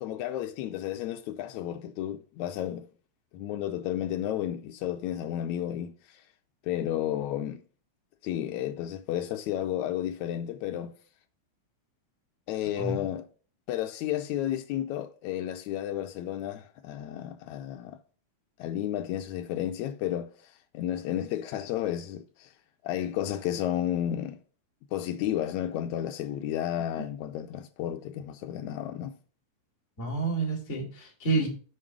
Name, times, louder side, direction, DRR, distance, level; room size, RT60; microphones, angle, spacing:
voice 1, 0.0-2.9 3.3-6.2 6.6-7.6 8.2-10.9 12.5-13.3 13.7-18.0 18.6-22.5 22.8-24.4 24.9-29.2, left 11 dB, 90° left, 1.7 m, -32 dB
voice 2, 30.0-31.5, right 3 dB, 25° left, 2.8 m, -29 dB
7.2 x 6.0 x 4.6 m
omnidirectional pair, 3.9 m